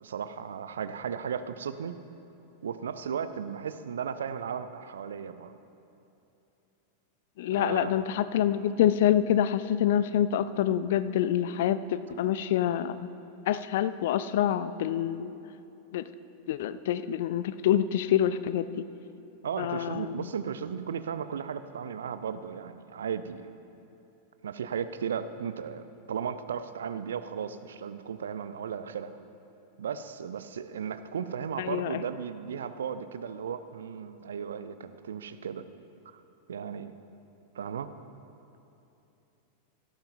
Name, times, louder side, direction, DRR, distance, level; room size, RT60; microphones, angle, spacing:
voice 1, 0.0-2.0 2.6-5.6 7.5-7.9 19.4-23.5 24.4-29.1 29.8-35.7 36.1-36.2 36.5-37.0 37.5-37.9, right 7 dB, 65° right, 12 dB, 0.5 m, -35 dB
voice 2, 7.4-13.1 13.5-15.3 15.9-16.0 16.5-18.8 19.6-20.3 31.6-32.0, left 10 dB, 55° left, 14 dB, 0.4 m, -26 dB
17.0 x 12.5 x 2.6 m, 2.8 s
figure-of-eight pair, 90°, 0 cm